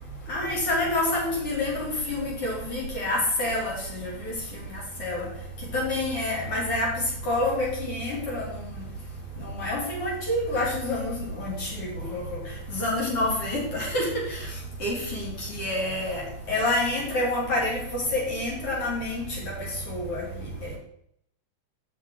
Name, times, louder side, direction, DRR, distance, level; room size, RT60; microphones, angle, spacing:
voice 1, 0.3-4.3 5.0-5.3 5.7-6.9 7.3-8.7 9.4-12.4 12.7-14.4 14.8-19.3 19.9-20.2, left 1 dB, 40° left, -4 dB, 3.7 m, -28 dB
9.3 x 6.3 x 4.0 m, 0.72 s
omnidirectional pair, 4.3 m